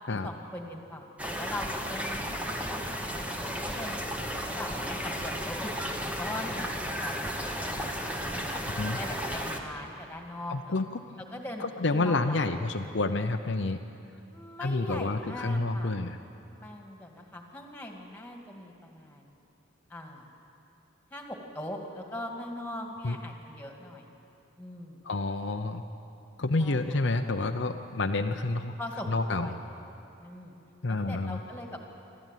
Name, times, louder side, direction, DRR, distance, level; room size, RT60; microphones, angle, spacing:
voice 1, 0.1-8.6 8.9-10.8 11.3-12.5 14.2-15.9 16.6-19.4 19.9-20.3 21.1-24.1 24.6-25.0 26.6-27.0 28.8-29.8 30.2-30.6 30.9-31.8, left 1 dB, 10° left, 2 dB, 2.2 m, -41 dB
sound 1, 1.2-9.6, equal, 5° right, 1.3 m, -34 dB
voice 2, 10.5-10.9 11.6-13.8 14.6-16.2 23.0-23.2 25.0-25.8 26.4-28.7 29.1-29.6 30.8-31.4, left 2 dB, 60° left, 5 dB, 0.7 m, -29 dB
26.0 x 13.5 x 9.2 m, 2.8 s
head